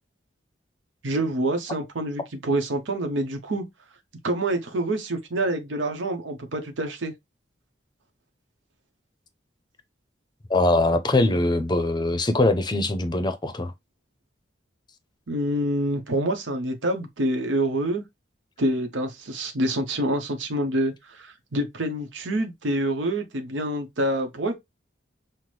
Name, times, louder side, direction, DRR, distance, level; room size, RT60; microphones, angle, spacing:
voice 1, 1.0-3.7 4.2-7.1 15.3-18.0 18.6-24.5, right 1 dB, 90° right, 0.8 m, -26 dB
voice 2, 10.5-13.7, left 2 dB, 25° left, 0.5 m, -22 dB
5.7 x 2.1 x 3.2 m
head